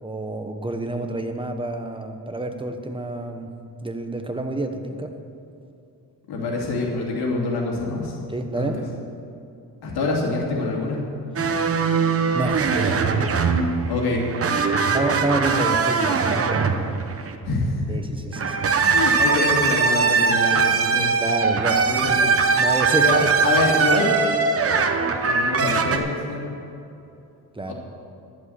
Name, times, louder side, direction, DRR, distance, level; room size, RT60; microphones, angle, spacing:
voice 1, 0.0-3.5 3.8-5.1 8.3-8.8 12.3-13.0 14.9-16.7 17.9-18.7 21.2-22.0 22.6-23.3 27.5-27.7, right 2 dB, 15° right, 5 dB, 1.0 m, -28 dB
voice 2, 6.3-8.2 8.5-8.8 9.8-11.0 13.9-14.2 17.4-18.0 18.7-21.1 21.8-22.6 22.9-24.2 25.2-26.4 27.7-27.8, left 2 dB, 90° left, -2 dB, 2.9 m, -26 dB
sound 1, 11.4-17.4 18.3-26.0, right 5 dB, 40° right, 1.0 m, -21 dB
12.0 x 7.6 x 8.1 m, 2.7 s
cardioid pair, 115°, 37 cm